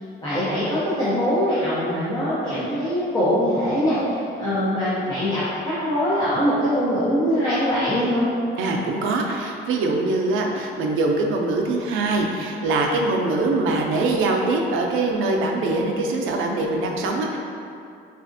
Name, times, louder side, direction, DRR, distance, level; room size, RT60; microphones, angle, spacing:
voice 1, 0.2-8.3, equal, 20° left, -11 dB, 0.6 m, -22 dB
voice 2, 8.6-17.4, right 2 dB, 90° right, 1 dB, 0.5 m, -23 dB
4.1 x 2.4 x 2.6 m, 2.5 s
cardioid pair, 150°, 20 cm